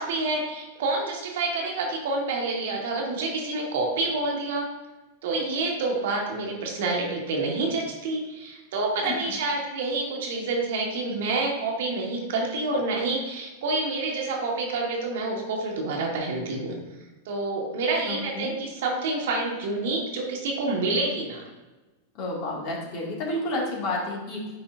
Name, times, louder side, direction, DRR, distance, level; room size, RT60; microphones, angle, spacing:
voice 1, 0.0-4.7 5.2-16.8 17.2-21.4, right 3 dB, 60° right, -1 dB, 1.6 m, -28 dB
voice 2, 9.0-9.3 18.1-18.5 22.1-24.4, left 2 dB, 50° left, -3 dB, 2.0 m, -31 dB
9.8 x 4.2 x 2.6 m, 1.1 s
figure-of-eight pair, 95°, 0 cm